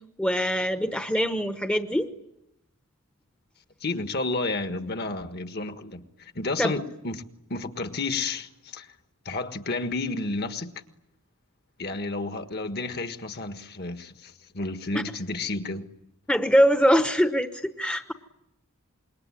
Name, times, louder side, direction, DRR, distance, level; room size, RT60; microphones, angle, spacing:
voice 1, 0.2-2.1 6.6-6.7 16.3-18.1, equal, 5° left, 1.0 m, -23 dB
voice 2, 3.8-7.2 7.5-8.9 9.2-10.7 11.8-15.9, left 3 dB, 45° left, 1.6 m, -31 dB
27.0 x 22.0 x 9.9 m
head